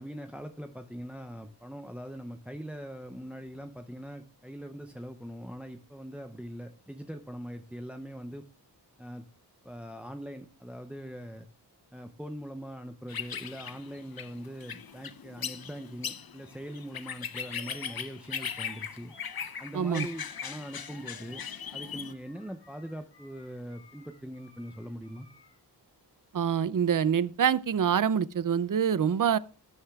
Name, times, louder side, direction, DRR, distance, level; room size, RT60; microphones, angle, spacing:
voice 1, 0.0-8.4 9.0-9.3 9.6-11.5 11.9-19.1 19.6-21.4 21.7-25.3, equal, 5° right, 0.6 m, -42 dB
sound 1, 13.1-22.1, left 7 dB, 60° left, 0.7 m, -39 dB
Animal, 17.4-25.6, left 3 dB, 85° left, 7.1 m, -56 dB
voice 2, 19.7-20.1 26.3-29.4, right 8 dB, 50° right, 0.5 m, -26 dB
19.0 x 9.8 x 2.3 m
wide cardioid pair, 65°, 41 cm